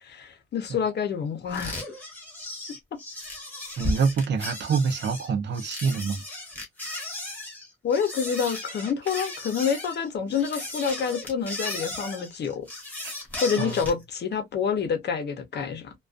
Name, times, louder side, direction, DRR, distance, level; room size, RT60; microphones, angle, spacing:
voice 1, 0.0-1.8 7.8-12.7 13.4-15.9, left 6 dB, 55° left, 0.7 m, -27 dB
sound 1, 1.5-14.0, left 1 dB, 10° left, 1.1 m, -36 dB
voice 2, 3.8-6.2 13.0-13.1 13.6-13.8, right 5 dB, 60° right, 0.6 m, -26 dB
2.4 x 2.2 x 2.4 m
wide cardioid pair, 165°, 21 cm